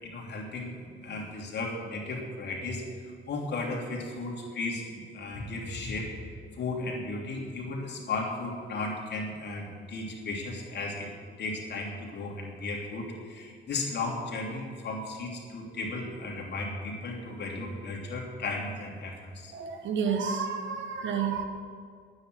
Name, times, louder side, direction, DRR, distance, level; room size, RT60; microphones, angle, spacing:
voice 1, 0.0-2.8 3.3-6.1 6.5-11.1 11.4-19.5, left 2 dB, 60° left, -1 dB, 3.1 m, -35 dB
voice 2, 19.5-21.4, right 6 dB, 70° right, 6 dB, 1.6 m, -30 dB
10.5 x 9.6 x 7.9 m, 2.1 s
cardioid pair, 90°, 20 cm